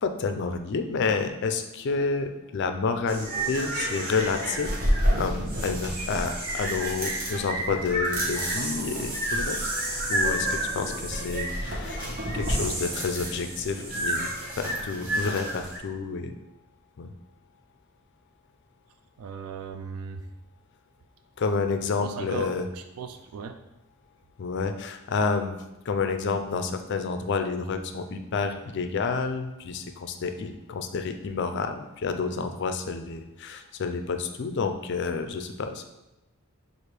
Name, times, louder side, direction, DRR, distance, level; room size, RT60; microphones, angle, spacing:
voice 1, 0.0-4.7 5.1-9.7 10.1-16.3 17.0-17.1 21.4-22.7 24.4-35.9, left 4 dB, 55° left, 8 dB, 0.4 m, -29 dB
sound 1, 3.1-15.8, right 1 dB, 40° right, 0.9 m, -29 dB
sound 2, 6.8-13.0 14.0-14.1, equal, 10° right, 0.5 m, -49 dB
voice 2, 19.2-20.2 22.0-23.6, right 5 dB, 85° right, 8 dB, 0.3 m, -37 dB
6.1 x 2.5 x 3.3 m, 0.97 s
head